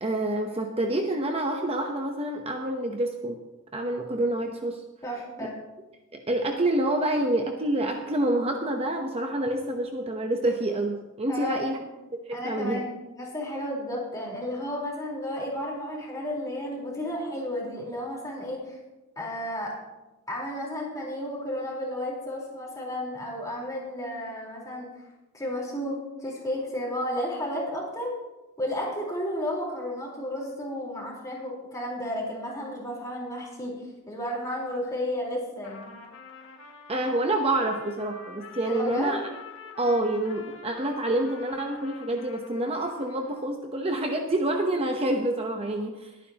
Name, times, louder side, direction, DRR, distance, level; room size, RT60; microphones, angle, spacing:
voice 1, 0.0-3.4 3.7-4.8 6.1-11.8 12.1-12.8 36.9-39.2 39.8-46.1, right 1 dB, 30° right, 3 dB, 0.9 m, -27 dB
voice 2, 5.0-5.5 11.3-11.6 12.3-12.9 13.2-18.8 19.2-19.7 20.3-24.9 25.3-28.2 28.6-33.7 34.1-35.9 38.6-39.2, left 1 dB, 15° left, -4 dB, 4.1 m, -32 dB
Trumpet, 35.6-43.5, left 3 dB, 85° left, 2.0 m, -46 dB
21.0 x 9.6 x 2.9 m, 1.1 s
head